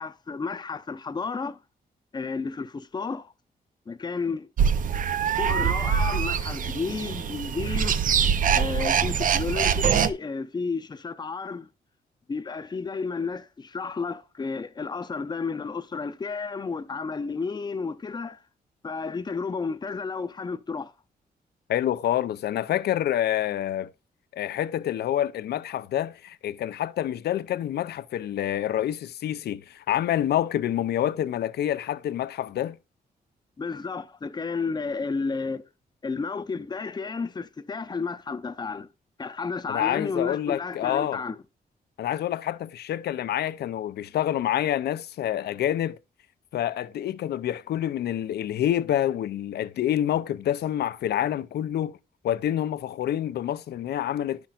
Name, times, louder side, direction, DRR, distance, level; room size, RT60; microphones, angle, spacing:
voice 1, 0.0-1.6 2.1-3.3 3.9-4.5 5.4-8.0 8.5-11.7 12.3-18.4 18.8-20.9 33.6-35.6 36.0-38.9 39.2-41.4, left 4 dB, 25° left, 0.6 m, -32 dB
sound 1, 4.6-10.1, right 7 dB, 55° right, 0.5 m, -24 dB
voice 2, 21.7-23.9 24.4-32.8 39.7-41.2 42.0-46.0 46.5-52.0 52.2-54.5, left 11 dB, 85° left, 0.5 m, -27 dB
11.5 x 5.9 x 2.4 m
cardioid pair, 105°, 16 cm